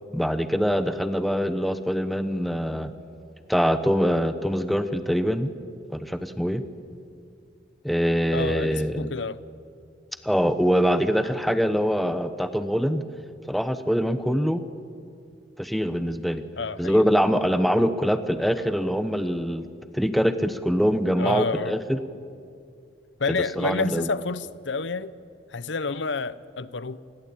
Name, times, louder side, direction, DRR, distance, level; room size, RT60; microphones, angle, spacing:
voice 1, 0.1-2.9 3.5-5.5 5.9-6.6 7.8-9.1 10.2-13.0 13.5-14.6 15.6-16.4 16.8-19.6 19.9-22.0 23.6-24.1, equal, ahead, 0.9 m, -24 dB
voice 2, 8.3-9.4 16.6-17.0 21.2-21.7 23.2-25.1 25.5-27.0, left 4 dB, 75° left, 0.9 m, -29 dB
27.5 x 20.5 x 8.6 m
head